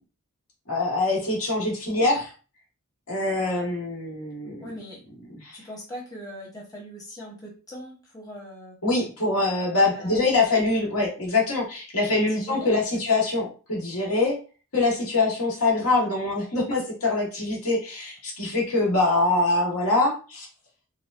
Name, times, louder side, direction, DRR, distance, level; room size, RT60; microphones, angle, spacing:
voice 1, 0.7-2.3 3.1-4.7 5.4-5.6 8.8-14.4 14.7-20.5, left 2 dB, 75° left, -3 dB, 1.5 m, -24 dB
voice 2, 4.6-5.0 5.5-8.8 9.8-10.2 12.3-12.8, equal, 15° left, -4 dB, 1.0 m, -40 dB
4.8 x 2.1 x 2.5 m, 0.35 s
head